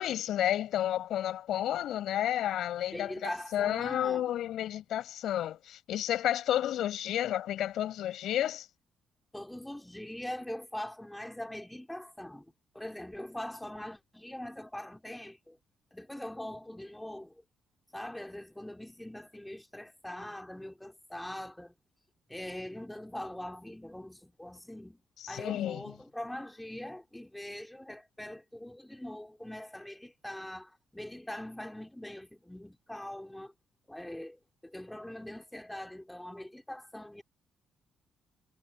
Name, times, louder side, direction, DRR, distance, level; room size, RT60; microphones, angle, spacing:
voice 1, 0.0-8.7 25.3-25.9, left 12 dB, 75° left, 7.5 m, -31 dB
voice 2, 2.9-4.2 9.3-12.5 12.7-15.6 15.9-17.4 17.9-21.7 22.3-25.0 25.3-33.5 33.9-37.2, left 1 dB, 5° left, 4.0 m, -42 dB
cardioid pair, 90°, 0 cm